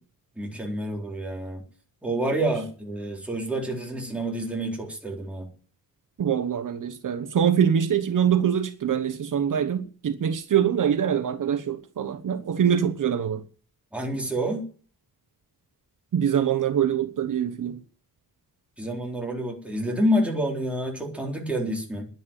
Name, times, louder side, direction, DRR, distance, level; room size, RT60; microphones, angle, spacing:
voice 1, 0.4-1.6 2.0-5.5 13.9-14.6 18.8-22.1, right 1 dB, 5° right, 4.1 m, -28 dB
voice 2, 6.2-13.4 16.1-17.8, right 8 dB, 60° right, 1.1 m, -24 dB
10.5 x 10.5 x 9.1 m
wide cardioid pair, 150°, 36 cm